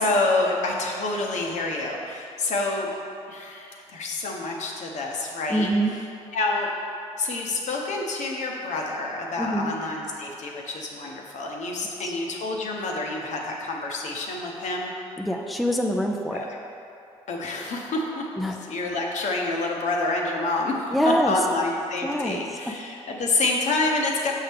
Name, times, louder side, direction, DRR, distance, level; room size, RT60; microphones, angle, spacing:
voice 1, 0.0-2.9 3.3-5.7 6.3-6.7 7.2-14.9 16.3-16.5 17.3-18.3 18.7-20.9 21.3-24.3, left 2 dB, 60° left, 0 dB, 0.9 m, -27 dB
voice 2, 5.5-5.9 9.4-9.7 12.0-12.1 15.2-16.4 18.4-18.6 20.9-21.3 22.0-22.4 22.7-22.8, equal, ahead, 2 dB, 0.4 m, -25 dB
6.3 x 4.6 x 3.5 m, 2.6 s
hypercardioid pair, 60°, 14 cm